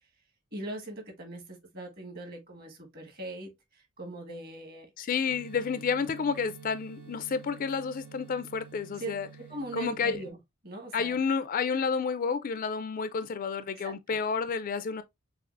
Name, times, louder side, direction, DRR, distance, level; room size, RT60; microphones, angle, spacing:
voice 1, 0.5-3.5 4.0-4.9 8.9-9.1 9.4-10.4 10.6-11.2 13.7-14.2, right 2 dB, 45° right, 1.5 m, -40 dB
voice 2, 5.0-9.3 9.7-10.2 10.9-15.0, left 5 dB, 40° left, 0.3 m, -30 dB
sound 1, 5.3-10.3, right 5 dB, 80° right, 1.8 m, -49 dB
6.5 x 2.4 x 2.5 m
head